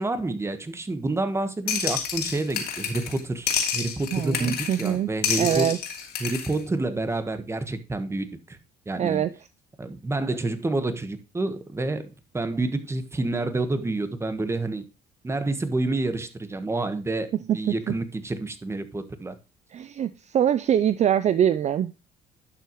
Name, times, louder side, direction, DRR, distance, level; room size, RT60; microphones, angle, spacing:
voice 1, 0.0-5.7 6.2-8.6 8.9-9.2 9.8-14.8 15.2-19.4, right 2 dB, 15° right, 1.3 m, -28 dB
sound 1, 1.7-3.2 3.5-4.9 5.2-6.6, left 7 dB, 70° left, 2.8 m, -29 dB
voice 2, 4.1-5.1 5.4-5.8 9.0-9.3 17.5-17.7 19.7-21.9, right 9 dB, 45° right, 0.5 m, -23 dB
11.5 x 6.9 x 3.0 m
cardioid pair, 110°, 17 cm